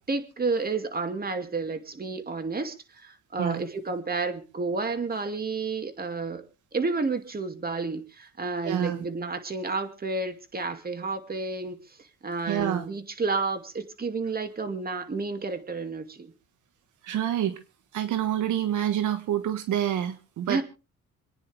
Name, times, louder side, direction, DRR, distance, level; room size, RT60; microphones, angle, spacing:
voice 1, 0.1-6.4 6.7-16.3 20.5-20.6, right 3 dB, 30° right, 8 dB, 2.4 m, -31 dB
voice 2, 8.6-9.0 12.5-12.8 17.0-17.5 17.9-20.6, right 10 dB, 80° right, 9 dB, 1.5 m, -27 dB
27.0 x 9.9 x 3.4 m, 0.33 s
cardioid pair, 90°, 30 cm